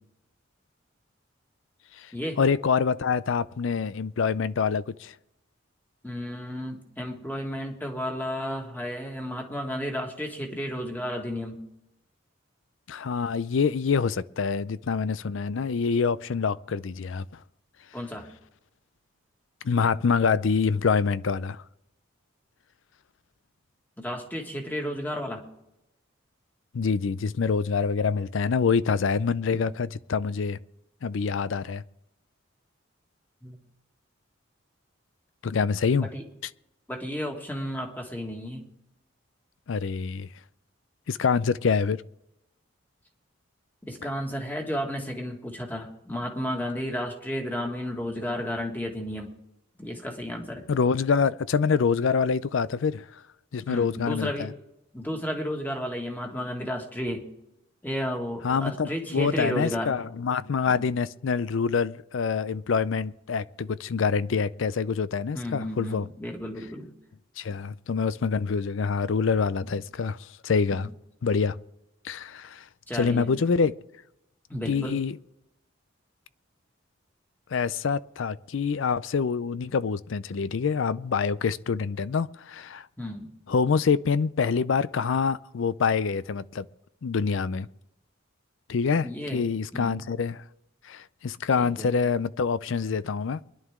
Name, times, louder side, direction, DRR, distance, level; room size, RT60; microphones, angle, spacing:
voice 1, 2.4-5.1 12.9-17.3 19.6-21.6 26.7-30.6 31.0-31.8 35.4-36.1 39.7-40.3 41.1-42.0 50.7-53.0 53.5-54.5 58.4-66.1 67.4-70.9 71.2-71.6 72.0-72.6 72.9-73.7 74.7-75.2 77.5-82.9 83.5-86.7 87.0-87.7 88.7-90.4 90.8-93.4, left 5 dB, 70° left, 0.4 m, -26 dB
voice 2, 6.0-11.6 17.9-18.3 24.0-25.5 29.5-29.6 33.4-33.6 36.0-36.2 36.9-38.7 43.9-49.3 49.8-50.7 53.7-54.5 54.9-57.3 57.8-60.0 60.7-60.9 65.3-66.9 69.6-69.7 70.7-70.8 72.9-73.3 74.5-75.0 83.0-83.3 89.0-90.0 91.6-92.0, equal, 10° left, 1.8 m, -33 dB
23.5 x 11.0 x 3.6 m
head